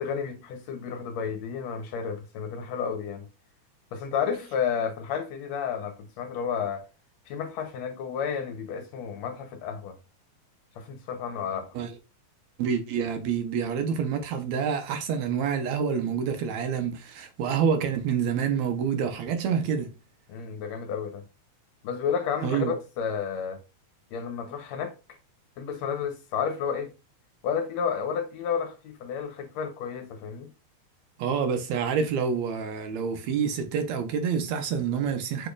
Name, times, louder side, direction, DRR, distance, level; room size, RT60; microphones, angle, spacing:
voice 1, 0.0-3.3 3.9-6.8 7.3-10.0 10.8-11.7 20.3-21.2 21.8-23.6 24.1-25.2 25.6-26.9 27.4-30.5, left 7 dB, 70° left, 1.8 m, -31 dB
voice 2, 12.6-19.9 22.4-22.7 31.2-35.5, right 7 dB, 75° right, 1.9 m, -27 dB
6.3 x 3.4 x 2.3 m
omnidirectional pair, 3.5 m